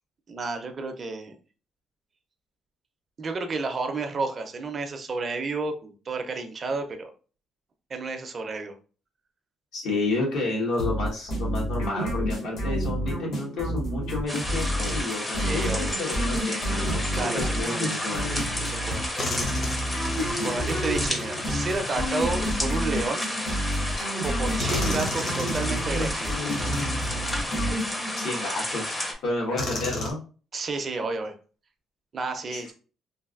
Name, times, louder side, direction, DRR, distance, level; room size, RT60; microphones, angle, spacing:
voice 1, 0.3-1.3 3.2-7.1 7.9-8.7 15.4-15.9 17.1-17.9 18.6-19.1 20.1-23.3 24.2-26.5 30.5-31.3 32.1-32.7, right 3 dB, 35° right, 6 dB, 0.5 m, -31 dB
voice 2, 9.7-17.0 17.3-18.3 28.2-30.2 32.5-32.7, left 2 dB, 80° left, -2 dB, 1.3 m, -31 dB
sound 1, 10.8-28.3, equal, 65° left, 1.2 m, -29 dB
sound 2, 14.3-29.1, left 1 dB, 15° left, 0.6 m, -32 dB
sound 3, 19.2-22.8 23.8-23.9 24.6-27.9 28.5-28.6 29.6-30.1, left 2 dB, 40° left, 0.8 m, -34 dB
3.2 x 2.5 x 2.4 m, 0.37 s
cardioid pair, 120°, 0 cm